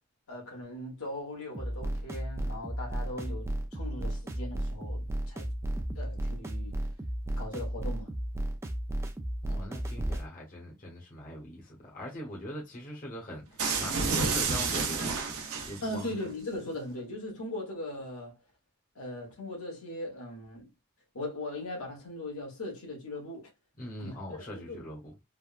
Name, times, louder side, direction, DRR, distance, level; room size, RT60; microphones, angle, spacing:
voice 1, 0.3-5.5 5.9-6.8 7.4-8.1 15.8-18.4 18.9-20.7 21.1-23.5 24.0-24.8, left 1 dB, 75° left, 1.3 m, -39 dB
sound 1, 1.5-10.3, right 1 dB, 10° right, 0.3 m, -34 dB
voice 2, 9.4-15.2 15.6-16.1 23.8-25.1, left 1 dB, 35° left, 1.0 m, -41 dB
sound 2, 13.6-16.0, right 4 dB, 75° right, 0.8 m, -30 dB
3.4 x 2.1 x 2.4 m
head